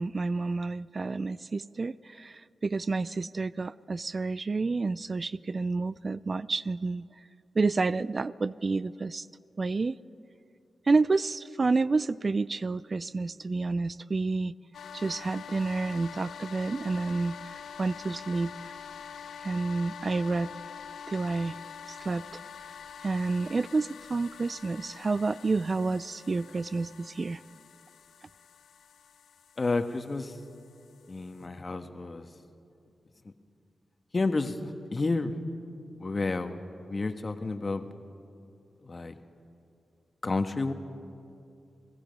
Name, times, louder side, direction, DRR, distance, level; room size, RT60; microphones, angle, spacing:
voice 1, 0.0-7.1 7.5-9.3 9.6-10.0 10.9-14.5 14.9-18.7 19.4-20.5 21.1-21.6 21.9-22.4 23.0-27.4, right 3 dB, 50° right, 18 dB, 0.4 m, -29 dB
sound 1, 14.7-31.4, left 7 dB, 85° left, 0.6 m, -46 dB
voice 2, 29.6-30.4 31.1-32.3 33.2-33.3 34.1-35.3 35.9-36.6 36.9-37.9 38.8-39.2 40.2-40.7, left 3 dB, 45° left, 7 dB, 1.5 m, -30 dB
29.0 x 18.0 x 5.4 m, 2.5 s
cardioid pair, 45°, 0 cm